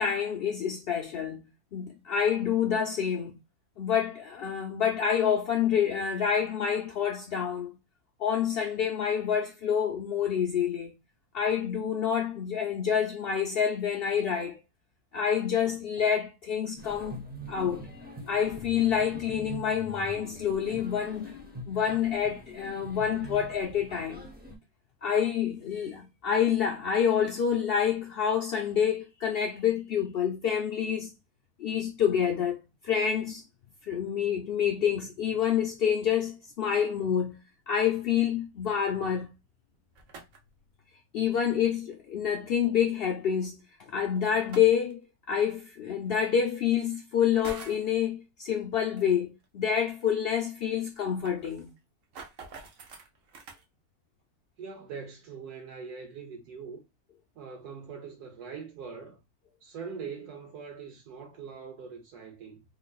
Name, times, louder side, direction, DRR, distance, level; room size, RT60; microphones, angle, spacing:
voice 1, 0.0-1.4 1.7-3.3 3.8-7.8 8.2-10.9 11.3-14.6 15.1-17.9 18.3-24.3 25.0-31.1 31.6-32.6 32.8-33.4 33.9-37.4 37.7-39.3 41.1-43.6 43.9-45.0 45.3-51.7, left 8 dB, 70° left, 0.5 m, -27 dB
sound 1, 16.8-24.6, right 1 dB, 15° right, 0.4 m, -44 dB
sound 2, 39.7-40.6 42.2-42.3 44.3-44.9 46.1-46.2 47.2-47.9 49.0-49.1 49.4-49.5 49.9-50.0 50.2-50.3 50.8-53.6, right 4 dB, 60° right, 1.2 m, -46 dB
voice 2, 54.6-56.8 57.4-59.2 59.6-62.6, right 6 dB, 80° right, 1.3 m, -42 dB
3.8 x 3.2 x 2.3 m
omnidirectional pair, 1.6 m